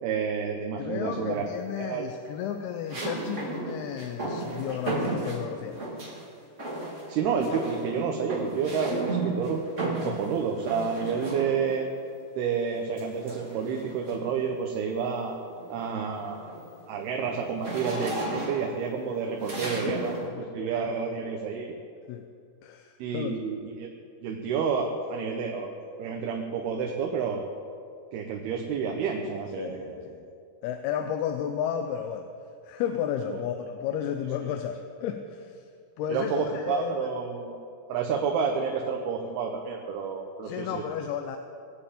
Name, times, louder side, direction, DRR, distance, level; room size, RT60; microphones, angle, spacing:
voice 1, 0.0-1.5 1.8-2.1 7.1-11.9 12.4-15.4 15.7-16.6 16.9-20.1 20.5-21.7 23.0-23.9 24.2-27.4 28.1-30.0 33.3-33.4 36.1-37.6 37.9-40.8, right 6 dB, 80° right, 2 dB, 3.1 m, -30 dB
voice 2, 0.8-5.8 10.0-10.2 19.8-19.9 20.2-20.7 22.1-22.3 22.6-23.4 29.6-30.3 30.6-32.3 32.6-35.6 36.0-37.1 40.4-41.4, left 9 dB, 85° left, 5 dB, 2.7 m, -33 dB
sound 1, 1.0-1.6 2.9-6.2 6.6-7.1 7.4-11.8 13.0-14.4 14.9-15.1 15.5-20.3, right 2 dB, 20° right, 2.6 m, -34 dB
21.0 x 7.8 x 8.6 m, 2.4 s
omnidirectional pair, 4.5 m